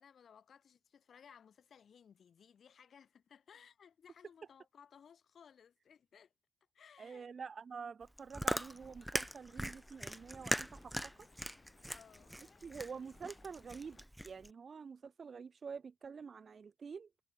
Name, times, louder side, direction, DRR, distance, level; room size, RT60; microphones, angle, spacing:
voice 1, 0.0-6.3 6.7-7.3 11.9-12.4, left 7 dB, 50° left, 2.4 m, -61 dB
voice 2, 7.0-11.3 12.6-17.1, right 5 dB, 40° right, 0.7 m, -48 dB
Chewing mastication, 8.0-14.5, equal, 5° right, 0.3 m, -40 dB
sound 1, 8.4-14.1, left 4 dB, 35° left, 5.3 m, -65 dB
cardioid pair, 90°, 0 cm